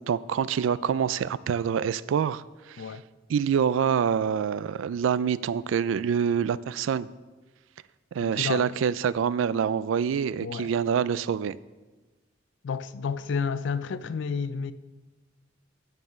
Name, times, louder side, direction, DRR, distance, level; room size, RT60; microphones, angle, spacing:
voice 1, 0.0-2.8 3.3-7.1 8.1-11.6, right 7 dB, 75° right, 0.3 m, -26 dB
voice 2, 8.2-8.8 10.4-10.7 12.6-14.7, left 5 dB, 65° left, 0.4 m, -31 dB
9.3 x 5.6 x 6.2 m
head